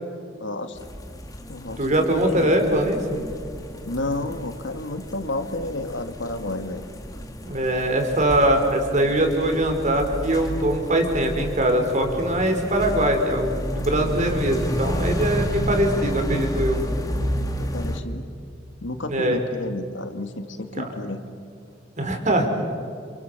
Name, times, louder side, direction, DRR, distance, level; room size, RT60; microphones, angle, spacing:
voice 1, 0.4-0.8 1.5-2.6 3.8-6.8 17.6-18.3 18.8-21.2, left 2 dB, 90° left, 7 dB, 2.2 m, -31 dB
sound 1, 0.8-18.0, equal, 20° left, 2.4 m, -31 dB
voice 2, 1.8-3.0 7.4-16.8 19.1-19.4 22.0-22.5, right 1 dB, 40° right, 4 dB, 4.8 m, -22 dB
30.0 x 28.5 x 6.9 m, 2.4 s
head